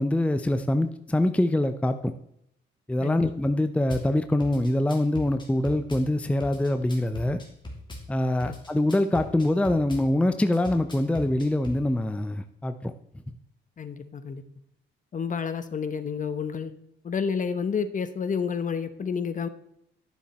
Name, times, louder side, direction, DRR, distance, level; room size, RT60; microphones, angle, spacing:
voice 1, 0.0-2.1 2.9-7.4 8.1-12.9, left 1 dB, 5° left, 9 dB, 0.6 m, -24 dB
Drum kit / Bass drum, 3.9-4.1 4.4-6.1 6.4-8.1 8.4-10.1 10.5-11.8, left 1 dB, 25° left, 2.8 m, -39 dB
voice 2, 13.8-14.4 15.1-16.7 17.0-19.5, left 6 dB, 40° left, 11 dB, 1.0 m, -30 dB
11.5 x 7.2 x 4.2 m, 0.76 s
cardioid pair, 90°, 20 cm